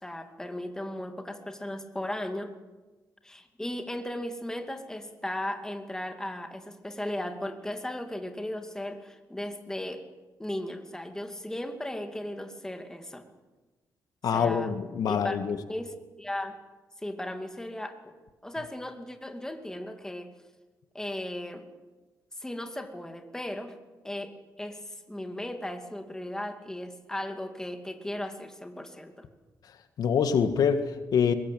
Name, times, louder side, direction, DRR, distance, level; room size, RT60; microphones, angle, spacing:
voice 1, 0.0-2.6 3.2-10.0 10.4-13.3 14.3-14.7 15.0-15.4 15.7-16.6 17.0-18.2 18.4-20.3 20.9-21.7 22.4-23.8 24.0-29.3, left 1 dB, 10° left, 6 dB, 2.5 m, -36 dB
voice 2, 14.2-15.6 30.0-31.3, left 7 dB, 70° left, 9 dB, 1.8 m, -25 dB
22.5 x 21.0 x 9.2 m, 1.2 s
cardioid pair, 110°, 7 cm